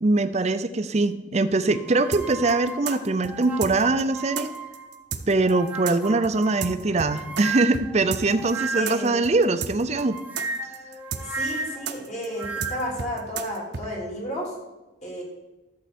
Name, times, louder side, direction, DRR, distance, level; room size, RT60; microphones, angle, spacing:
voice 1, 0.0-4.5 5.3-10.2, right 3 dB, 35° right, 11 dB, 0.6 m, -22 dB
sound 1, 1.7-5.0 5.4-9.2 9.9-13.0, right 4 dB, 10° right, 0.9 m, -34 dB
sound 2, 2.1-7.4 7.7-13.9, right 6 dB, 65° right, 0.8 m, -33 dB
voice 2, 8.8-9.2 11.2-14.5 15.0-15.2, equal, 40° left, -2 dB, 2.9 m, -32 dB
12.5 x 7.4 x 4.3 m, 1.1 s
head